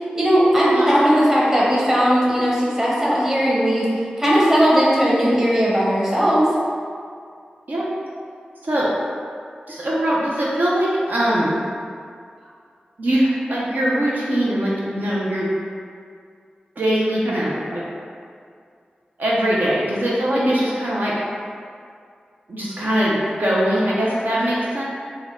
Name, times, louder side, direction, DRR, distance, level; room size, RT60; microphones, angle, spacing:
voice 1, 0.1-3.9 4.2-6.5 20.3-20.5, equal, 15° right, -7 dB, 1.0 m, -18 dB
voice 2, 9.7-11.6 13.0-15.5 16.8-17.8 19.2-21.1 22.5-24.8, right 1 dB, 65° right, -6 dB, 0.6 m, -21 dB
3.5 x 2.1 x 3.6 m, 2.3 s
cardioid pair, 50°, 3 cm